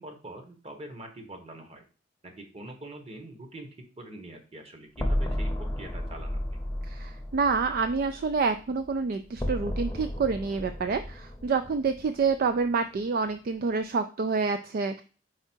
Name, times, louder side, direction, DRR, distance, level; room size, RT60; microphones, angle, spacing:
voice 1, 0.0-1.8 2.4-3.7 4.0-6.6, right 1 dB, 35° right, 4 dB, 1.1 m, -44 dB
sound 1, 5.0-9.0 9.4-12.7, left 1 dB, 15° left, 0.7 m, -33 dB
voice 2, 6.9-15.0, right 4 dB, 50° right, 9 dB, 0.3 m, -28 dB
4.9 x 4.4 x 4.4 m, 0.37 s
head